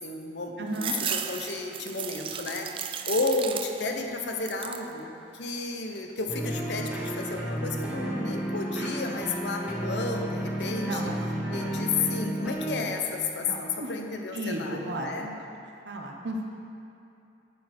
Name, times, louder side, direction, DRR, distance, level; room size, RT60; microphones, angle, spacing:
voice 1, 0.0-11.1 11.5-15.4, left 3 dB, 75° left, 3 dB, 0.8 m, -32 dB
voice 2, 0.6-1.0 10.8-11.7 13.4-13.9 14.3-15.3 15.9-16.4, right 1 dB, 70° right, 1 dB, 1.0 m, -34 dB
sound 1, 0.7-4.0 4.3-4.9 5.4-6.1, right 8 dB, 30° right, 0.3 m, -35 dB
sound 2, 6.3-12.9, equal, 10° right, 1.2 m, -32 dB
9.8 x 6.5 x 4.3 m, 2.7 s
head